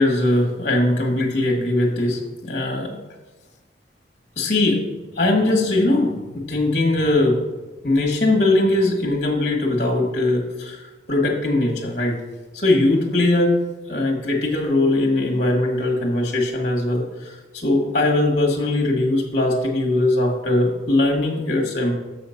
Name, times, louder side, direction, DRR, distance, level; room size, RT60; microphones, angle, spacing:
voice 1, 0.0-2.9 4.4-4.8 5.1-7.4 7.8-10.8 11.1-12.2 12.5-13.5 13.9-21.9, left 2 dB, 45° left, 1 dB, 1.4 m, -20 dB
6.9 x 5.7 x 5.7 m, 1.2 s
head